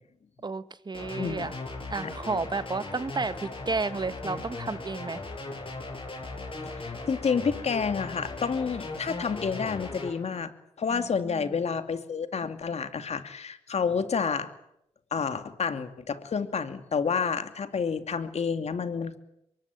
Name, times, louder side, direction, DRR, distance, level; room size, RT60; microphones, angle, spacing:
voice 1, 0.4-1.5 1.9-5.2 10.9-11.6, right 4 dB, 35° right, 13 dB, 1.6 m, -32 dB
sound 1, 0.9-10.1, left 2 dB, 45° left, 7.4 m, -38 dB
voice 2, 1.2-1.6 2.0-2.1 6.7-10.5 10.8-14.5 15.1-19.2, left 6 dB, 60° left, 9 dB, 2.6 m, -29 dB
23.5 x 20.5 x 9.3 m, 0.80 s
supercardioid pair, 50°, 13 cm